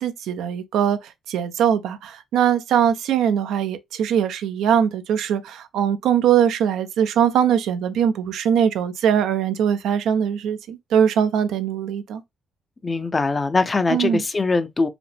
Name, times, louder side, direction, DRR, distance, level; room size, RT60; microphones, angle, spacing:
voice 1, 0.0-12.2 13.9-14.2, right 8 dB, 85° right, 0.6 m, -21 dB
voice 2, 12.8-14.9, left 3 dB, 30° left, 0.6 m, -22 dB
4.9 x 2.1 x 3.3 m
cardioid pair, 90°, 0 cm